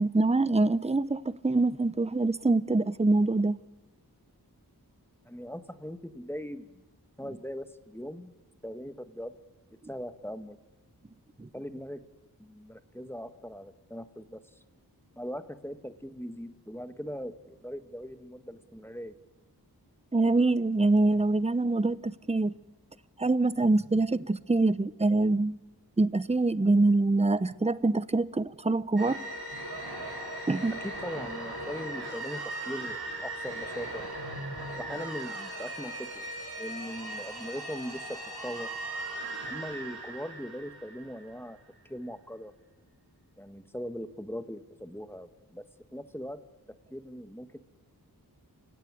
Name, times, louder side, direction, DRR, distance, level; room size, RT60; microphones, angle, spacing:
voice 1, 0.0-3.6 11.4-11.5 20.1-22.5 23.2-25.6 26.0-29.2 30.5-30.7, right 2 dB, 15° right, 0.8 m, -25 dB
voice 2, 5.2-6.8 7.2-8.3 8.6-9.3 9.9-10.6 11.5-12.0 12.4-14.4 15.2-19.2 30.8-34.0 34.8-36.3 36.6-38.7 39.5-41.6 41.8-42.5 43.4-45.7 45.9-46.4 46.9-47.6, equal, 5° left, 1.6 m, -40 dB
sound 1, 29.0-41.5, right 1 dB, 75° right, 4.9 m, -38 dB
28.5 x 16.5 x 9.7 m
wide cardioid pair, 50°, 38 cm